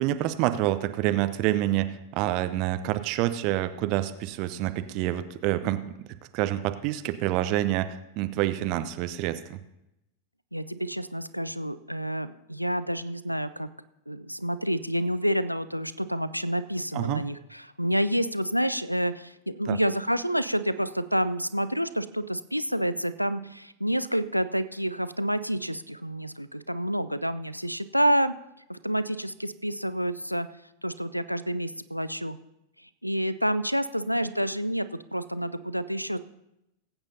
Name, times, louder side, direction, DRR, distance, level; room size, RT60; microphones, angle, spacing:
voice 1, 0.0-5.9 6.3-9.6 16.9-17.2 19.7-19.8, right 14 dB, 45° right, 11 dB, 0.6 m, -27 dB
voice 2, 10.5-13.7 14.1-28.3 28.7-30.5 30.8-32.4 32.8-36.2, equal, 90° right, 13 dB, 0.4 m, -28 dB
20.0 x 8.8 x 2.7 m, 0.87 s
figure-of-eight pair, 90°, 0 cm